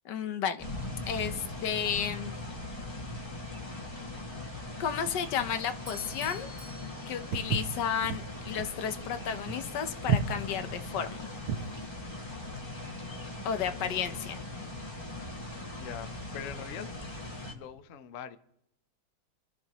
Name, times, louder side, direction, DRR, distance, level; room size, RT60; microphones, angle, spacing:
voice 1, 0.0-0.6 1.1-2.4 4.8-6.5 7.1-11.3 13.4-14.4, left 8 dB, 65° left, 1.4 m, -32 dB
sound 1, 0.6-17.5, left 2 dB, 15° left, 1.8 m, -40 dB
Bell / Doorbell, 5.9-7.9, left 1 dB, 25° right, 0.4 m, -50 dB
Walk footsteps, 7.3-11.8, right 6 dB, 90° right, 1.7 m, -32 dB
voice 2, 13.6-14.2 15.6-16.9 17.5-18.4, left 8 dB, 80° left, 0.7 m, -43 dB
27.5 x 13.5 x 3.0 m
omnidirectional pair, 2.3 m